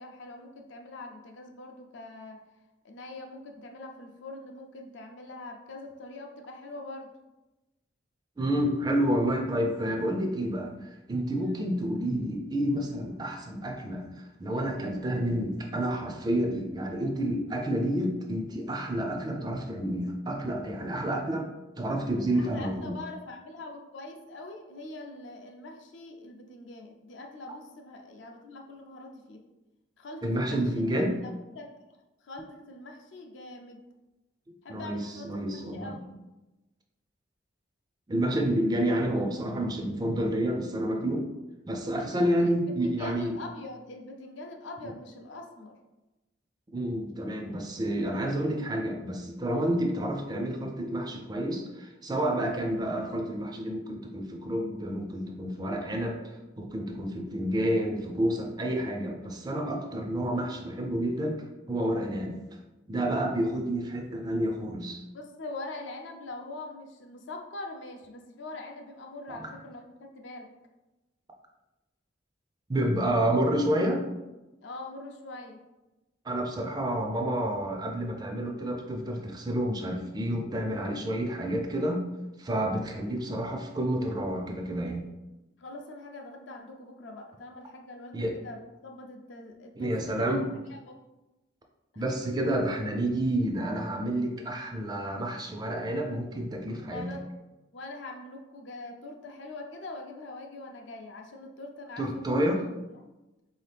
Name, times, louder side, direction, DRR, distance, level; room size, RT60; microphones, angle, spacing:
voice 1, 0.0-2.4 2.8-7.1 11.4-11.6 22.3-29.4 30.0-31.1 31.5-31.7 32.2-33.8 34.6-36.1 42.0-45.7 65.1-70.5 74.6-75.6 85.6-90.3 90.7-91.0 91.9-92.0 96.9-97.2 97.7-102.5, left 2 dB, 65° left, 3 dB, 0.5 m, -43 dB
voice 2, 8.4-21.5 21.8-22.9 30.2-31.2 34.5-36.0 38.1-41.3 41.7-43.4 44.8-44.9 46.7-62.4 62.9-65.0 69.3-69.5 72.7-74.0 76.2-82.1 82.4-85.1 88.1-88.4 89.8-90.5 92.0-97.1 102.0-102.6, right 1 dB, 20° right, 2 dB, 0.3 m, -29 dB
4.0 x 2.8 x 3.3 m, 1.0 s
head